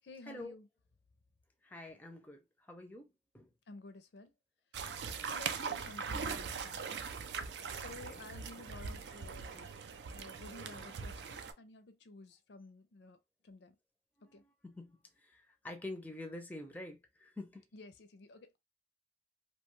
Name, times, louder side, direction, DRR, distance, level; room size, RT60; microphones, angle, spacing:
voice 1, 0.0-0.7 3.7-4.3 5.2-6.9 7.7-9.7 10.1-13.2 13.4-13.7 14.3-14.4 17.7-18.6, left 2 dB, 75° left, 0.4 m, -53 dB
voice 2, 1.6-3.5 8.0-8.2 14.2-17.6, left 2 dB, 10° left, 0.4 m, -47 dB
sound 1, 4.7-11.5, right 5 dB, 75° right, 0.4 m, -41 dB
2.7 x 2.2 x 3.0 m
head